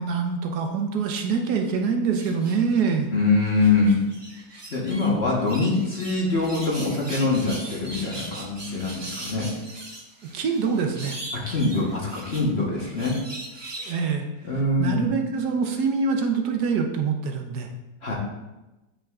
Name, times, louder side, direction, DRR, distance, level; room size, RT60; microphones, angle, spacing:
voice 1, 0.0-3.1 10.3-11.2 13.8-14.3 14.8-17.7, right 5 dB, 75° right, 3 dB, 1.3 m, -25 dB
sound 1, 2.2-2.9 3.4-5.1 5.5-13.9, right 1 dB, 30° right, 0.4 m, -39 dB
voice 2, 3.1-4.0 4.7-9.5 11.3-13.2 14.4-15.0 18.0-18.1, left 3 dB, 40° left, -3 dB, 1.3 m, -23 dB
8.7 x 5.4 x 2.4 m, 1.0 s
omnidirectional pair, 1.8 m